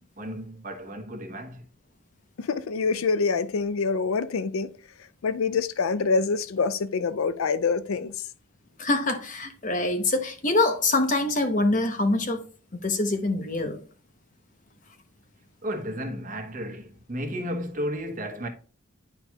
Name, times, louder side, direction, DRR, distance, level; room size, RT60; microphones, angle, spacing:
voice 1, 0.0-1.6 15.6-18.5, equal, 40° right, 1.0 m, -33 dB
voice 2, 2.4-4.7 5.2-8.1, left 4 dB, 85° left, 0.4 m, -25 dB
voice 3, 8.8-12.4 12.8-13.8, left 2 dB, 35° left, 0.9 m, -24 dB
9.7 x 4.5 x 2.3 m
head